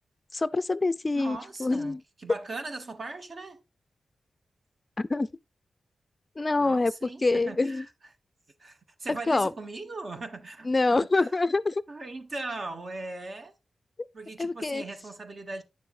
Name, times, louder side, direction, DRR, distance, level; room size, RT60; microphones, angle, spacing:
voice 1, 0.3-2.0 5.0-5.3 6.4-6.9 7.2-7.8 9.3-9.5 10.6-11.8 14.4-14.8, left 3 dB, 30° left, 0.4 m, -25 dB
voice 2, 1.1-3.6 6.6-7.9 8.6-11.3 11.9-13.5 14.1-15.6, right 2 dB, 50° right, 1.4 m, -39 dB
9.8 x 6.9 x 2.6 m
cardioid pair, 75°, 0 cm